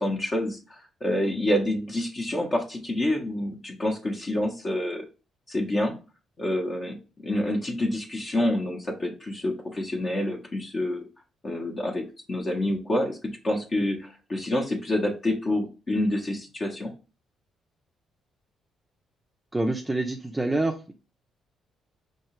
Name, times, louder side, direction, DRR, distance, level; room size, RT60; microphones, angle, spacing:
voice 1, 0.0-5.0 5.5-6.0 6.4-11.1 11.4-16.9, left 1 dB, 35° left, 0 dB, 0.8 m, -28 dB
voice 2, 19.5-20.9, right 2 dB, 10° right, 4 dB, 0.4 m, -27 dB
4.6 x 2.8 x 3.0 m, 0.33 s
cardioid pair, 90°, 0 cm